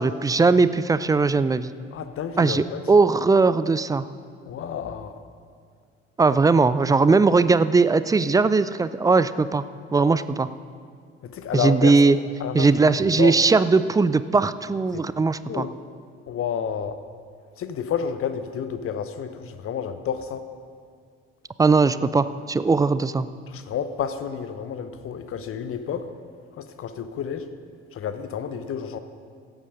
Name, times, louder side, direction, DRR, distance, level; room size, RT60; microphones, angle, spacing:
voice 1, 0.0-1.7 2.4-4.0 6.2-9.6 9.9-10.5 11.5-12.2 12.5-15.7 21.6-23.3, right 4 dB, 10° right, 14 dB, 0.3 m, -19 dB
voice 2, 1.9-2.9 4.4-5.2 11.2-12.0 12.4-13.4 14.9-15.0 15.5-15.8 16.3-17.0 17.6-20.5 23.5-26.1 26.6-27.5 27.9-29.0, left 7 dB, 40° left, 10 dB, 0.9 m, -30 dB
16.0 x 8.8 x 5.5 m, 2.2 s
figure-of-eight pair, 50°, 33 cm